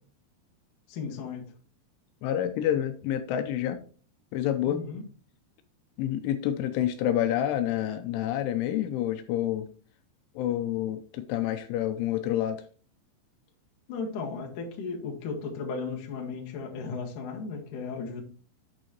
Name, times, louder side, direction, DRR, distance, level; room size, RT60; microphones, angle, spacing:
voice 1, 0.9-1.5 4.6-5.0 13.9-18.2, left 4 dB, 55° left, 2.6 m, -35 dB
voice 2, 2.2-3.8 4.3-4.8 6.0-9.7 10.4-12.6, left 11 dB, 85° left, 3.1 m, -28 dB
9.0 x 7.2 x 3.0 m
omnidirectional pair, 5.5 m